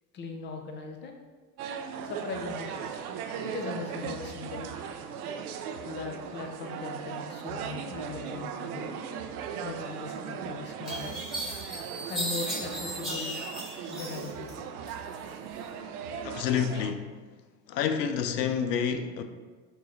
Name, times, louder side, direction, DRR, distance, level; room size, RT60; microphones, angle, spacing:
voice 1, 0.1-1.2 2.0-3.0 3.4-4.7 5.8-8.9 9.6-11.2 12.1-13.4 13.9-14.7, left 4 dB, 25° left, 0.4 m, -39 dB
sound 1, 1.6-16.9, right 7 dB, 60° right, 0.5 m, -38 dB
sound 2, 10.1-10.2 10.9-14.5 14.9-15.6, equal, ahead, 1.2 m, -36 dB
voice 2, 16.2-17.1 17.7-19.2, left 7 dB, 75° left, 0.6 m, -28 dB
5.2 x 2.7 x 3.0 m
figure-of-eight pair, 75°, 50 cm